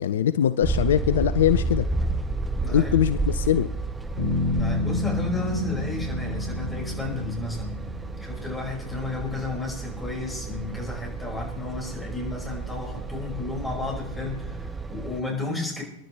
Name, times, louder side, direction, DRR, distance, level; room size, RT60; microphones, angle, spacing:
voice 1, 0.0-1.9 2.7-3.7, left 10 dB, 60° left, 15 dB, 0.5 m, -22 dB
sound 1, 0.6-15.2, right 3 dB, 10° right, 1.0 m, -31 dB
voice 2, 2.6-3.0 4.5-7.8 8.2-15.8, left 3 dB, 10° left, -2 dB, 6.2 m, -33 dB
Bass guitar, 4.2-8.5, left 2 dB, 35° left, 6.3 m, -29 dB
29.5 x 11.5 x 3.4 m, 0.82 s
figure-of-eight pair, 90°, 0 cm